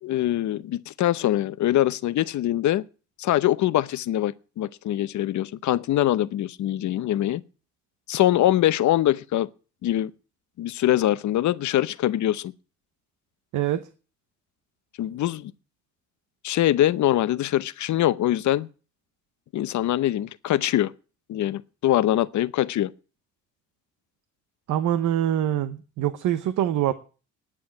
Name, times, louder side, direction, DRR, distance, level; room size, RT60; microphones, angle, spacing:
voice 1, 0.0-2.8 3.2-7.4 8.1-9.5 9.8-10.1 10.6-12.5 15.0-15.5 16.4-18.7 19.5-20.9 21.3-22.9, left 13 dB, 70° left, 0.8 m, -23 dB
voice 2, 13.5-13.9 24.7-26.9, right 11 dB, 80° right, 1.0 m, -24 dB
10.0 x 8.6 x 8.8 m
cardioid pair, 90°, 30 cm